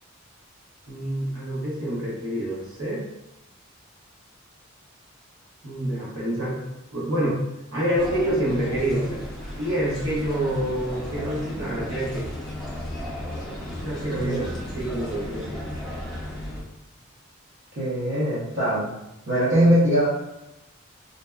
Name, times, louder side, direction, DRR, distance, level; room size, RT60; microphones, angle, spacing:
voice 1, 0.9-3.1 5.6-6.6 6.9-7.4 7.7-9.2 9.6-12.3 13.8-14.5 14.7-15.7, right 1 dB, 75° right, -6 dB, 1.0 m, -27 dB
sound 1, 7.9-16.6, left 1 dB, ahead, 0.5 m, -34 dB
voice 2, 14.1-14.5 17.8-18.9 19.3-20.1, equal, 55° right, -11 dB, 0.7 m, -21 dB
2.6 x 2.2 x 2.2 m, 0.91 s
head